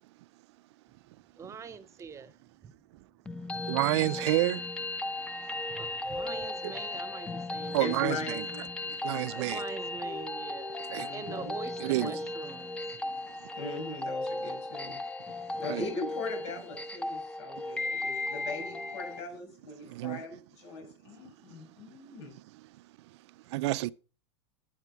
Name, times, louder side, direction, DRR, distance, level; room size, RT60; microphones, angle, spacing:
voice 1, 1.4-2.3 2.6-2.7 5.7-8.0 8.3-8.4 9.4-10.7 11.1-12.7, right 6 dB, 20° right, 1.0 m, -43 dB
sound 1, 3.3-19.2, left 2 dB, 5° left, 0.7 m, -36 dB
voice 2, 3.7-4.6 7.7-8.5 9.0-9.6 10.9-11.1 11.8-12.1 15.7-15.9 19.9-20.2 23.5-23.9, right 18 dB, 70° right, 0.5 m, -28 dB
voice 3, 7.8-9.4 11.0-11.5 12.0-12.1 13.6-15.0 15.6-22.3, left 3 dB, 75° left, 6.1 m, -40 dB
12.0 x 8.0 x 4.9 m
supercardioid pair, 130°, 15 cm